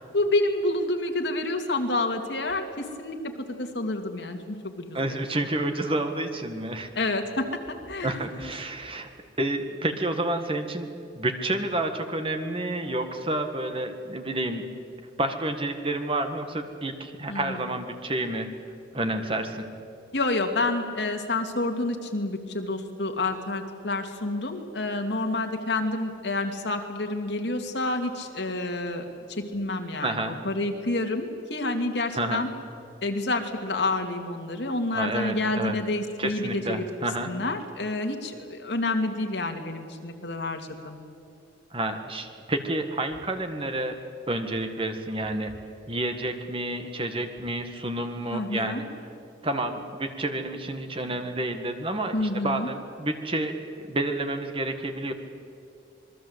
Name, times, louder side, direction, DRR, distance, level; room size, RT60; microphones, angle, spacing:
voice 1, 0.1-3.2 3.6-5.2 7.0-7.5 7.9-8.5 17.3-17.6 20.1-32.5 33.0-36.8 37.3-41.0 48.3-48.8 52.1-52.7, left 2 dB, 65° left, 4 dB, 2.5 m, -28 dB
voice 2, 4.9-6.9 8.0-9.1 9.4-10.9 11.1-14.7 15.2-18.5 18.9-19.7 30.0-30.4 32.1-32.4 34.9-35.7 36.2-37.3 41.7-44.0 44.3-45.5 45.9-48.8 49.4-55.1, right 1 dB, 30° right, 6 dB, 1.7 m, -29 dB
26.5 x 21.0 x 8.1 m, 2.4 s
head